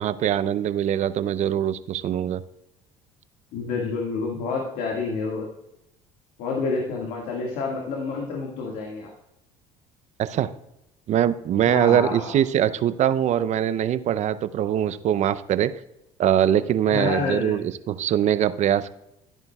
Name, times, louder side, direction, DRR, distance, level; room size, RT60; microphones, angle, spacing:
voice 1, 0.0-2.4 10.2-10.5 11.1-15.7 16.2-18.9, right 10 dB, 50° right, 14 dB, 0.6 m, -22 dB
voice 2, 3.5-5.5 6.4-9.1 11.6-12.3 16.8-17.7, left 4 dB, 75° left, -1 dB, 1.8 m, -28 dB
12.0 x 10.5 x 2.3 m, 0.86 s
supercardioid pair, 80°, 15 cm